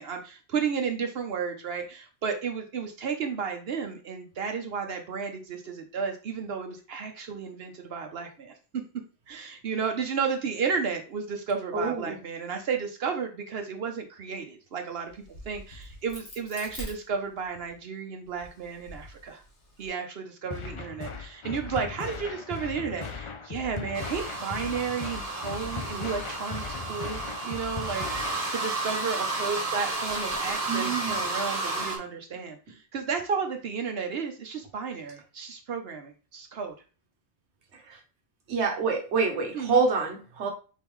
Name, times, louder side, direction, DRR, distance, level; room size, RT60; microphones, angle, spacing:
voice 1, 0.0-8.6 9.3-19.4 19.8-36.7 39.5-39.8, right 6 dB, 65° right, 5 dB, 0.9 m, -33 dB
voice 2, 11.7-12.2 30.7-31.2 37.7-38.0 38.5-40.5, right 4 dB, 85° right, 2 dB, 1.2 m, -27 dB
Crack, 15.1-17.7 18.2-19.9, equal, 80° left, 2.0 m, -45 dB
sound 1, 20.5-28.5, left 5 dB, 50° left, 0.3 m, -38 dB
sound 2, 23.9-32.0, right 2 dB, 35° right, 1.1 m, -32 dB
4.6 x 3.5 x 3.1 m, 0.35 s
omnidirectional pair, 1.1 m